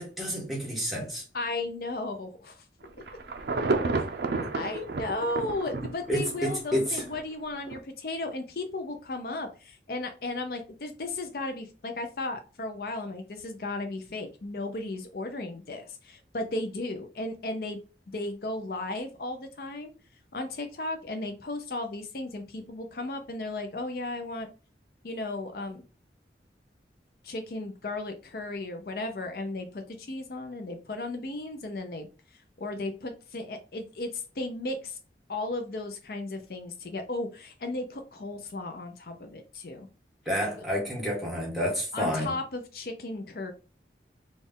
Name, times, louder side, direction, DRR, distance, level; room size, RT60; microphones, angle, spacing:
voice 1, 0.0-1.2 4.4-4.5 6.1-7.0 40.2-42.3, equal, ahead, 1.4 m, -29 dB
voice 2, 1.3-2.7 4.5-17.8 18.1-19.9 20.3-24.5 25.0-25.8 27.2-35.0 35.3-39.9 41.9-43.5, left 2 dB, 55° left, 0.5 m, -35 dB
Insect / Thunder / Rain, 2.8-7.2 7.7-7.8, right 3 dB, 65° right, 0.6 m, -31 dB
4.1 x 2.4 x 3.6 m
head